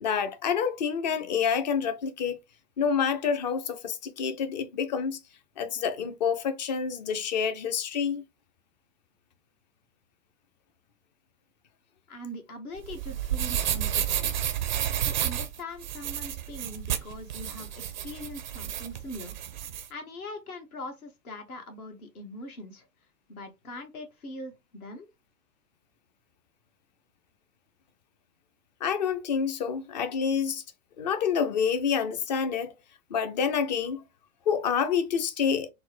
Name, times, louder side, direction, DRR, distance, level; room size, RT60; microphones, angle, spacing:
voice 1, 0.0-2.4 2.8-5.2 5.6-8.2 28.8-30.6 31.0-32.7 33.1-34.0 34.5-35.7, left 7 dB, 30° left, 0.4 m, -28 dB
voice 2, 12.1-14.7 15.0-19.4 19.9-22.9 23.3-25.1, left 1 dB, 65° left, 1.4 m, -42 dB
sound 1, 12.8-19.9, right 11 dB, 35° right, 0.4 m, -31 dB
4.3 x 2.0 x 3.1 m
figure-of-eight pair, 100°, 48 cm